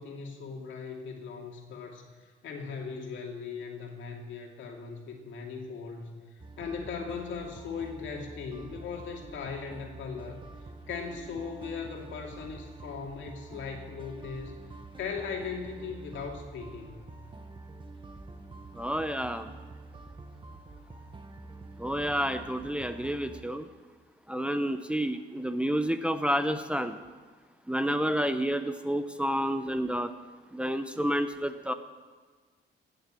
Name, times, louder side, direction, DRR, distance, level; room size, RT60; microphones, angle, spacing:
voice 1, 0.0-2.1 2.4-6.2 6.6-10.4 10.9-14.6 15.0-17.1, left 5 dB, 75° left, 2 dB, 2.3 m, -38 dB
sound 1, 6.4-23.4, right 2 dB, 25° right, 1.1 m, -47 dB
voice 2, 18.8-19.5 21.8-23.6 24.3-27.0 27.7-30.1 30.5-31.7, equal, 5° right, 8 dB, 0.7 m, -29 dB
17.5 x 6.7 x 7.5 m, 1.4 s
cardioid pair, 90°, 20 cm